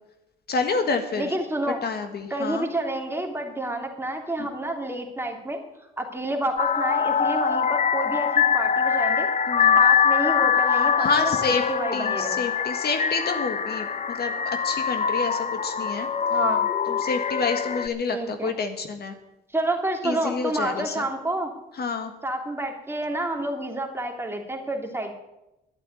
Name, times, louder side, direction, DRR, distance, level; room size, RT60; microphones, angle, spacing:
voice 1, 0.5-1.3 1.8-2.6 4.4-4.5 9.5-9.8 11.0-11.6 11.9-16.1 16.9-19.1 20.0-21.0 21.8-22.1, left 4 dB, 55° left, 7 dB, 1.7 m, -28 dB
voice 2, 1.1-1.8 2.3-5.6 6.0-9.3 9.8-12.4 16.3-16.6 18.1-18.5 19.5-21.5 22.2-25.1, right 1 dB, 10° right, 2 dB, 2.8 m, -29 dB
sound 1, 6.6-17.9, left 7 dB, 35° left, 0.8 m, -23 dB
12.0 x 8.3 x 9.7 m, 0.93 s
cardioid pair, 90°, 20 cm